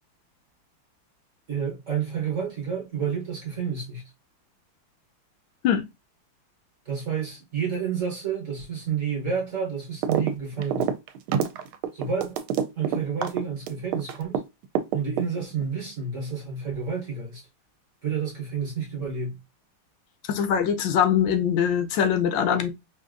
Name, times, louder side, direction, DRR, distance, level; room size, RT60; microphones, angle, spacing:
voice 1, 1.5-4.1 6.9-10.9 11.9-12.4 12.8-14.4 14.9-17.4 18.0-19.4, right 6 dB, 50° right, 1.0 m, -30 dB
sound 1, 10.0-10.3 10.6-14.4 14.8-15.6, right 8 dB, 80° right, 1.4 m, -26 dB
voice 2, 20.3-22.7, left 8 dB, 75° left, 1.2 m, -22 dB
5.1 x 2.5 x 2.5 m
omnidirectional pair, 2.3 m